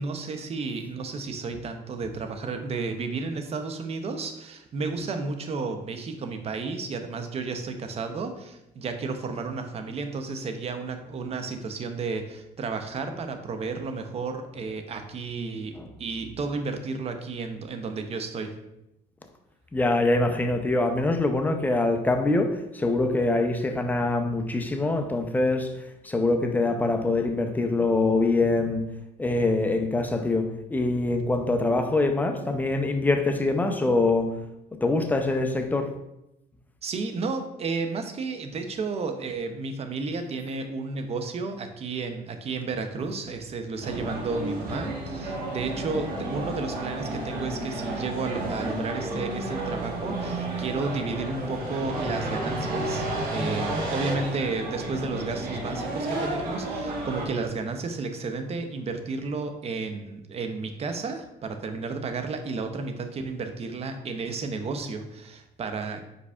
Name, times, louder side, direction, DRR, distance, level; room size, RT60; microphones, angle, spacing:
voice 1, 0.0-18.6 36.8-66.0, right 4 dB, 40° right, 0.6 m, -32 dB
voice 2, 19.7-28.9 29.2-34.4 34.8-35.9, left 2 dB, 10° left, 0.5 m, -24 dB
sound 1, 43.8-57.3, right 1 dB, 60° right, 1.2 m, -31 dB
4.9 x 4.6 x 2.3 m
cardioid pair, 110°, 17 cm